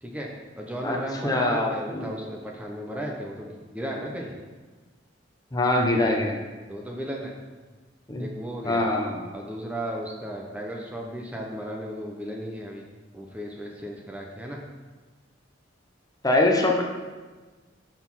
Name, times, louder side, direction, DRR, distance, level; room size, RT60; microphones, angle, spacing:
voice 1, 0.0-4.4 6.7-7.4 8.2-8.8 9.3-12.8 13.1-14.6, equal, 5° right, -1 dB, 0.8 m, -35 dB
voice 2, 1.2-2.1 5.5-6.4 8.1-8.3 8.6-9.2 16.2-16.8, left 2 dB, 20° left, 1 dB, 0.9 m, -23 dB
6.8 x 6.1 x 5.6 m, 1.3 s
head